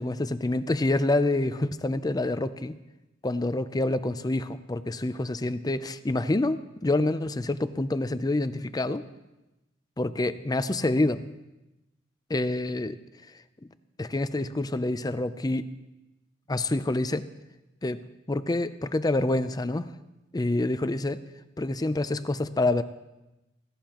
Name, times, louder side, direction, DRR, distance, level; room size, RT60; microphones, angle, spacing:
voice 1, 0.0-2.8 3.2-9.0 10.0-11.2 12.3-13.0 14.0-15.7 16.5-17.3 17.8-18.0 18.3-19.9 20.3-21.2 21.6-22.8, left 2 dB, 20° left, 13 dB, 0.5 m, -27 dB
16.5 x 16.5 x 3.0 m, 1.0 s
head